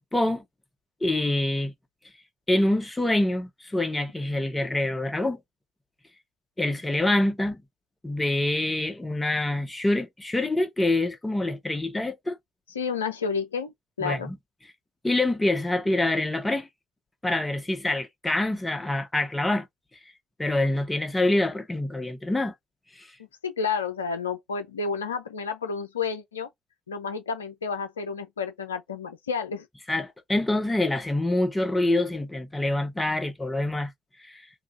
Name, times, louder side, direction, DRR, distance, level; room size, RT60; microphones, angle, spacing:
voice 1, 0.1-0.4 1.0-1.7 2.5-5.4 6.6-7.6 8.0-12.4 14.0-14.4 15.0-16.7 17.2-19.7 20.4-22.5 23.0-23.1 29.9-33.9 34.3-34.4, left 1 dB, 15° left, 0.9 m, -26 dB
voice 2, 12.7-14.3 23.4-26.5 26.9-29.7, left 5 dB, 85° left, 0.4 m, -30 dB
2.9 x 2.4 x 2.5 m
figure-of-eight pair, 45°, 0 cm